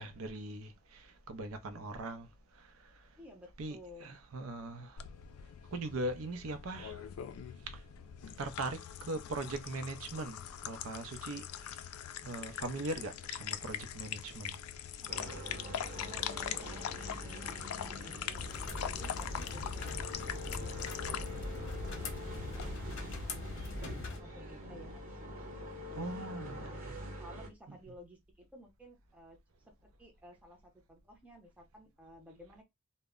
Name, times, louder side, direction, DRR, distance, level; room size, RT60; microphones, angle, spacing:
voice 1, 0.0-3.1 3.6-5.0 5.7-7.1 7.6-7.8 8.4-11.9 12.2-14.6 25.9-26.9 27.7-27.8, right 2 dB, 80° right, 0.5 m, -41 dB
voice 2, 3.2-4.2 15.0-15.6 15.9-23.6 24.0-25.3 25.9-26.8 27.2-32.6, equal, 5° right, 0.6 m, -55 dB
sound 1, 5.0-22.6, left 10 dB, 90° left, 0.3 m, -42 dB
sound 2, 15.1-27.5, equal, 40° right, 1.0 m, -45 dB
sound 3, 18.3-24.2, left 2 dB, 60° left, 0.7 m, -41 dB
2.1 x 2.0 x 3.5 m
head